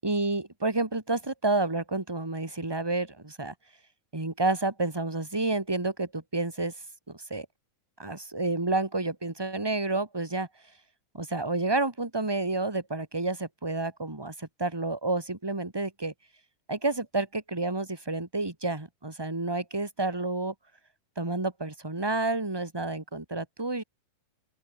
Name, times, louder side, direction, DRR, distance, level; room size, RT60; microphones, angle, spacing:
voice 1, 0.0-3.5 4.1-6.7 7.1-7.4 8.0-10.5 11.1-16.1 16.7-20.5 21.1-23.8, right 2 dB, 10° right, 1.8 m, -30 dB
open air
omnidirectional pair, 3.9 m